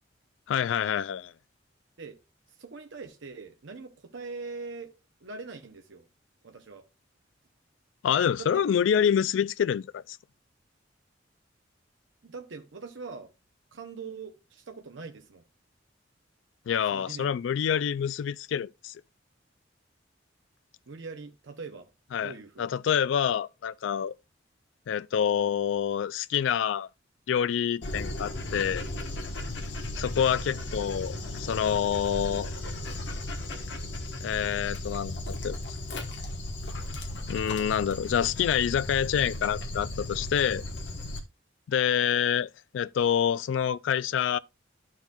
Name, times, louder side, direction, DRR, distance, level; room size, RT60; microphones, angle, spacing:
voice 1, 0.5-1.3 8.0-10.2 16.7-18.9 22.1-22.3 22.6-24.1 24.9-26.9 27.3-28.8 30.0-32.5 34.2-35.6 37.3-40.6 41.7-44.4, left 8 dB, 85° left, 0.3 m, -27 dB
voice 2, 2.5-4.9 5.2-6.1 6.4-6.9 8.3-8.6 12.2-13.3 13.7-15.4 16.9-17.4 20.9-22.7 41.8-42.0, right 4 dB, 80° right, 0.8 m, -42 dB
Dog, 27.8-41.2, left 1 dB, 70° left, 1.2 m, -36 dB
12.0 x 4.6 x 2.3 m
head